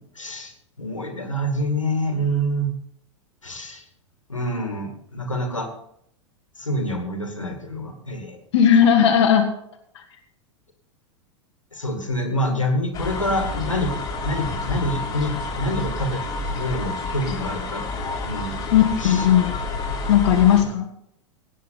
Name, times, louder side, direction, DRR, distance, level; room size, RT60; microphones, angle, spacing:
voice 1, 0.2-0.5 0.8-2.7 3.4-3.8 4.3-5.7 6.6-8.4 11.7-13.9 14.2-17.9 18.2-18.6 19.0-19.3, equal, 90° left, 5 dB, 2.1 m, -26 dB
voice 2, 8.5-9.5 9.9-10.0 18.7-19.5 20.1-20.9, left 9 dB, 60° left, 2 dB, 1.4 m, -16 dB
sound 1, 12.9-20.6, left 3 dB, 25° left, 2.9 m, -29 dB
17.5 x 9.2 x 4.0 m, 0.71 s
figure-of-eight pair, 90°, 16 cm